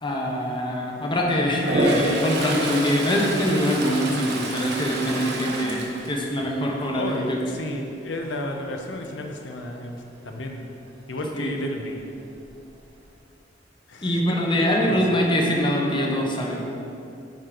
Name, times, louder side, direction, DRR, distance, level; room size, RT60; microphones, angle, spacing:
voice 1, 0.0-7.4 11.3-11.5 14.0-16.6, equal, 25° left, -1 dB, 1.0 m, -24 dB
Toilet flush, 1.5-6.7 7.1-7.5 12.0-12.1 12.4-13.1, right 1 dB, 65° right, 0.9 m, -27 dB
voice 2, 7.5-12.1 13.9-15.2, left 1 dB, 85° left, 3 dB, 0.8 m, -32 dB
8.9 x 4.8 x 3.9 m, 2.6 s
head